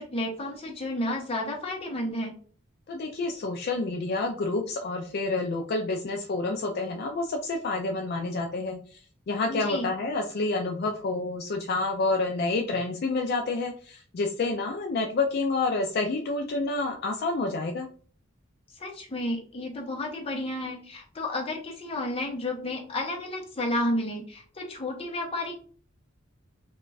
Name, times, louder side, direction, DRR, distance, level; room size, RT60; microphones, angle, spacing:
voice 1, 0.0-2.3 9.5-9.9 18.8-25.6, left 1 dB, 30° left, 1 dB, 0.7 m, -31 dB
voice 2, 2.9-17.9, left 3 dB, 55° left, 2 dB, 0.4 m, -29 dB
2.4 x 2.3 x 3.8 m, 0.44 s
head